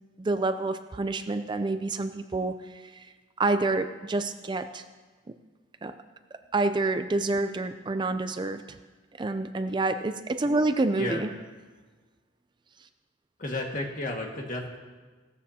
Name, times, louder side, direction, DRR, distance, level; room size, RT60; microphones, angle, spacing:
voice 1, 0.2-4.8 5.8-5.9 6.5-8.8 9.2-11.3, right 2 dB, 25° right, 9 dB, 0.4 m, -28 dB
voice 2, 13.4-14.8, left 2 dB, 45° left, 0 dB, 1.8 m, -32 dB
17.0 x 13.5 x 2.8 m, 1.4 s
head